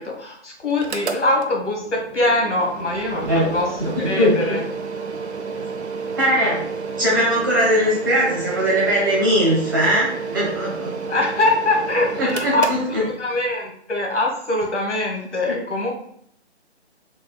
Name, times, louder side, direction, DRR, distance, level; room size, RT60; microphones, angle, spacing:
voice 1, 0.0-3.3 3.5-4.6 11.1-12.7 13.0-16.0, left 2 dB, 85° left, 0 dB, 1.8 m, -23 dB
Mechanical fan, 0.7-13.5, right 5 dB, 70° right, 0.7 m, -31 dB
voice 2, 3.8-4.6 6.2-6.6 7.0-10.9 12.1-12.5 12.9-13.0 15.5-15.6, equal, 20° right, -6 dB, 1.0 m, -20 dB
5.0 x 3.9 x 2.3 m, 0.67 s
hypercardioid pair, 170°, 34 cm